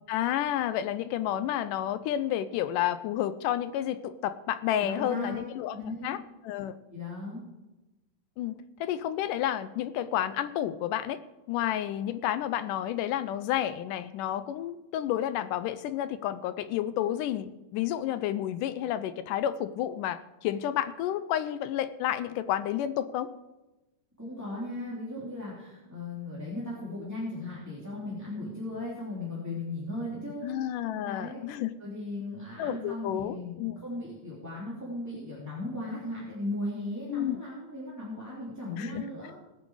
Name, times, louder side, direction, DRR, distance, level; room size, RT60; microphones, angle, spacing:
voice 1, 0.1-6.2 6.4-6.8 8.4-11.2 11.5-23.3 30.4-31.7 32.6-33.8 37.1-37.4 38.8-39.0, left 11 dB, 80° left, 13 dB, 2.1 m, -30 dB
voice 2, 4.8-5.4 5.7-6.2 6.9-7.4 24.2-30.6 30.9-31.4 31.8-39.4, left 1 dB, 5° right, -8 dB, 2.7 m, -37 dB
20.0 x 8.3 x 4.9 m, 1.0 s
omnidirectional pair, 3.9 m